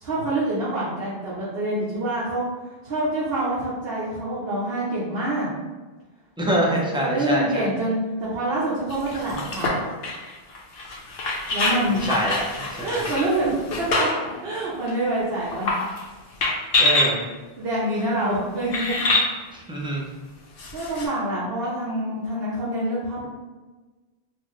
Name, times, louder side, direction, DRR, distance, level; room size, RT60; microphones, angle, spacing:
voice 1, 0.0-2.5 2.8-5.5 6.4-9.9 11.5-12.1 12.8-14.1 14.4-15.8 17.6-19.1 20.7-23.3, right 1 dB, 70° right, -8 dB, 1.0 m, -26 dB
voice 2, 6.4-7.7 11.9-13.1 16.8-17.2 19.5-20.0, right 1 dB, 5° right, -3 dB, 0.4 m, -25 dB
sound 1, 8.9-14.3 14.9-15.0 15.5-16.1 16.4-17.1 18.0-18.1 18.7-19.3 20.6-21.1, left 2 dB, 75° left, 0.9 m, -25 dB
4.2 x 2.0 x 3.0 m, 1.3 s
omnidirectional pair, 1.0 m